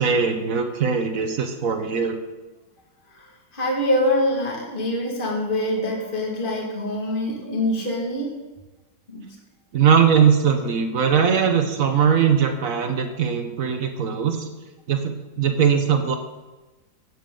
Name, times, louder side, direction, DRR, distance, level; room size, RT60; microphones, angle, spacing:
voice 1, 0.0-2.2 9.7-14.5 14.9-16.1, right 7 dB, 55° right, 6 dB, 1.1 m, -20 dB
voice 2, 3.1-8.3 9.1-9.3, left 1 dB, 30° left, -1 dB, 2.0 m, -25 dB
16.0 x 7.4 x 3.8 m, 1.1 s
omnidirectional pair, 2.0 m